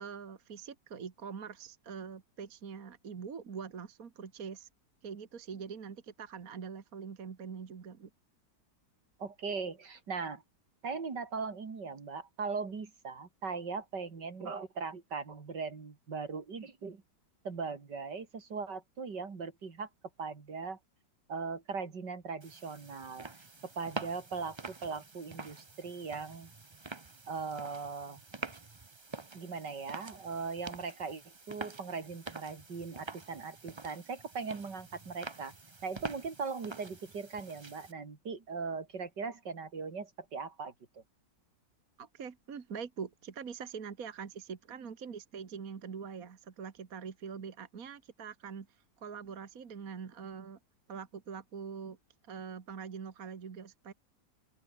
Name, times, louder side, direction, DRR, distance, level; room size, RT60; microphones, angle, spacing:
voice 1, 0.0-4.7 5.0-8.1 42.0-50.6 50.9-52.0 52.3-53.9, right 6 dB, 55° right, 2.0 m, -44 dB
voice 2, 9.2-10.4 10.8-17.0 17.5-19.9 20.2-20.8 21.3-23.3 23.6-26.5 27.3-28.2 29.3-35.5 35.8-41.0, right 5 dB, 75° right, 3.4 m, -39 dB
sound 1, 22.4-37.9, right 3 dB, 20° right, 0.7 m, -47 dB
open air
omnidirectional pair, 1.9 m